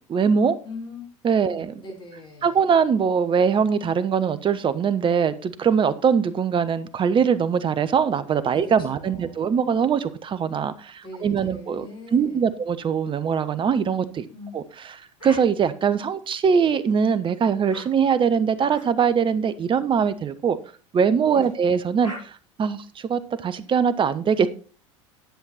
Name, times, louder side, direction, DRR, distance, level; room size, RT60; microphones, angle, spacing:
voice 1, 0.1-0.6 1.2-1.7 2.4-14.2 14.5-20.6 20.9-24.5, right 6 dB, 30° right, 1.0 m, -22 dB
voice 2, 0.6-1.0 1.5-2.6 8.5-9.7 11.0-12.6 14.3-14.5 21.3-21.6, left 3 dB, 30° left, 5.5 m, -41 dB
sound 1, 15.2-15.4 16.4-16.9 17.7-17.9 18.7-18.9 19.7-19.9 21.4-21.5 22.0-22.2, equal, 85° left, 6.8 m, -41 dB
10.5 x 7.9 x 4.2 m
hypercardioid pair, 75°, 16 cm